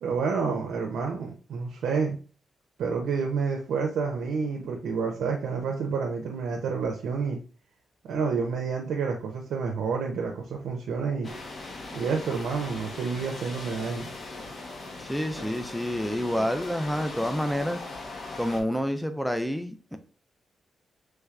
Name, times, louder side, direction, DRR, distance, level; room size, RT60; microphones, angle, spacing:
voice 1, 0.0-2.2 2.8-7.4 8.0-11.3 11.9-14.1, right 5 dB, 90° right, 1 dB, 0.5 m, -29 dB
sound 1, 11.2-18.6, left 2 dB, 50° left, 0.9 m, -39 dB
voice 2, 15.0-17.8 18.4-20.0, equal, ahead, 8 dB, 0.4 m, -28 dB
3.2 x 3.2 x 2.4 m, 0.37 s
cardioid pair, 95°, 0 cm